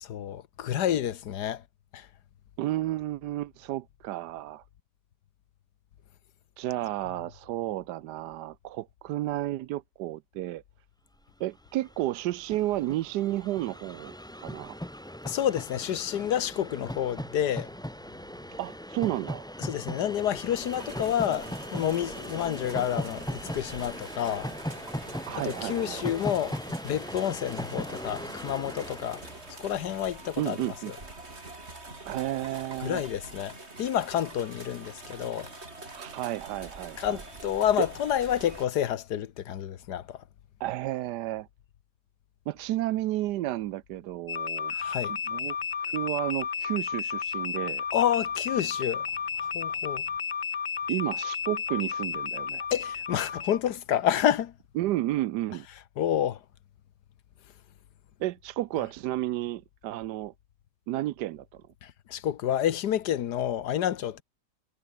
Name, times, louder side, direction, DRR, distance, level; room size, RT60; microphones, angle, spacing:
voice 1, 0.0-1.6 1.9-2.1 15.3-17.7 19.6-24.5 25.4-26.6 26.8-29.2 29.5-30.6 32.8-35.5 37.0-40.2 44.7-45.1 47.9-49.1 49.5-50.0 52.7-54.5 56.0-56.4 61.8-64.2, left 10 dB, 70° left, 1.5 m, -29 dB
voice 2, 2.6-4.6 6.6-10.6 11.4-14.8 18.6-19.5 25.3-26.0 30.4-30.9 32.0-33.0 35.9-37.2 37.8-37.9 40.6-41.5 42.5-44.7 45.1-47.8 50.9-52.7 54.8-55.7 58.2-60.3 60.9-61.6, right 15 dB, 75° right, 1.2 m, -32 dB
Train, 11.5-11.6 11.8-30.2, equal, ahead, 1.5 m, -39 dB
sound 1, 20.2-38.7, right 2 dB, 35° right, 4.3 m, -45 dB
sound 2, 44.3-53.6, left 6 dB, 45° left, 0.6 m, -32 dB
omnidirectional pair, 1.9 m